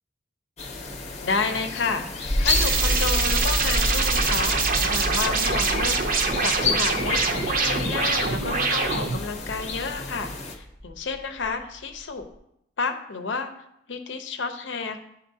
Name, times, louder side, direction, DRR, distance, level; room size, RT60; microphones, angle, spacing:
sound 1, 0.6-10.5, left 4 dB, 35° left, 0.7 m, -32 dB
voice 1, 1.2-12.2 12.8-13.5 13.9-15.0, left 4 dB, 70° left, 7 dB, 0.6 m, -31 dB
sound 2, 2.2-12.4, equal, ahead, 0.6 m, -30 dB
sound 3, 2.5-9.2, right 4 dB, 45° right, 0.6 m, -24 dB
10.5 x 4.1 x 2.7 m, 0.79 s
head